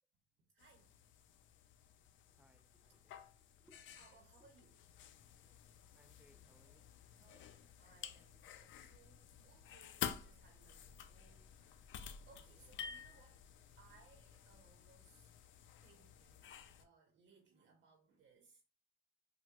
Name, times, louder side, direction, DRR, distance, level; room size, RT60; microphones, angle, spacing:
voice 1, 0.5-1.0 2.9-3.3 3.9-4.9 7.1-13.4 13.8-15.4 15.8-18.6, right 4 dB, 65° right, 0.8 m, -68 dB
sound 1, 0.6-16.8, left 9 dB, 75° left, 0.4 m, -51 dB
voice 2, 2.3-3.2 3.6-3.8 5.9-6.9 12.5-13.1, right 1 dB, 10° right, 0.5 m, -71 dB
4.4 x 2.1 x 2.3 m
cardioid pair, 90°, 20 cm